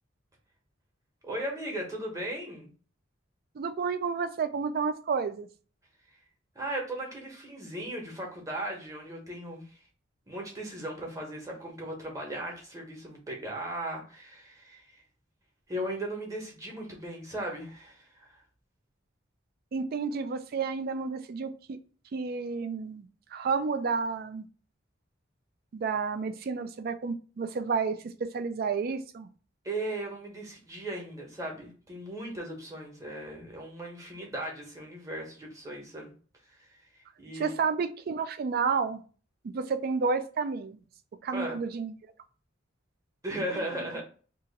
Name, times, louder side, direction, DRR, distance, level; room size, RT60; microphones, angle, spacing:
voice 1, 1.2-2.7 6.5-9.7 10.3-15.0 15.7-18.4 29.6-36.1 36.5-36.6 37.2-37.6 41.3-41.6 43.2-44.0, right 1 dB, 15° right, 0 dB, 0.9 m, -37 dB
voice 2, 3.6-5.5 19.7-21.8 22.1-24.5 25.7-29.3 37.3-39.0 39.4-40.8 41.2-41.9, right 5 dB, 50° right, 11 dB, 0.3 m, -31 dB
2.8 x 2.4 x 3.9 m, 0.40 s
head